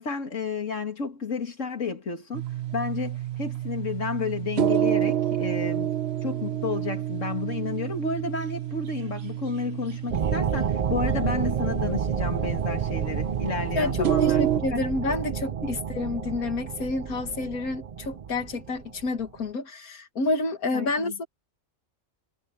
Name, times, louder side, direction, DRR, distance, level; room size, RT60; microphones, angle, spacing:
voice 1, 0.0-2.5 2.7-5.9 6.2-14.4 14.7-14.9 15.6-15.7 20.7-21.3, left 5 dB, 60° left, 2.6 m, -31 dB
sound 1, 2.3-14.6, right 11 dB, 50° right, 1.1 m, -29 dB
sound 2, 10.1-19.2, right 7 dB, 70° right, 0.3 m, -30 dB
voice 2, 13.8-21.3, left 3 dB, 90° left, 2.2 m, -29 dB
omnidirectional pair, 1.5 m